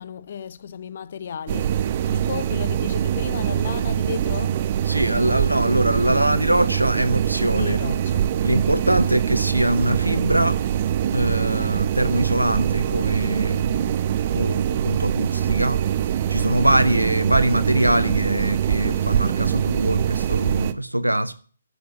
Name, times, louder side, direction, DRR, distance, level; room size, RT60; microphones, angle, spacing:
voice 1, 0.0-1.8 2.1-4.6 7.4-8.4, left 7 dB, 45° left, 0.6 m, -34 dB
sound 1, 1.5-20.7, right 10 dB, 35° right, 0.7 m, -23 dB
voice 2, 4.9-7.9 8.4-10.6 11.1-14.0 14.3-15.8 16.3-21.3, right 1 dB, 85° right, 0.9 m, -22 dB
11.0 x 8.1 x 7.3 m
figure-of-eight pair, 135°, 0 cm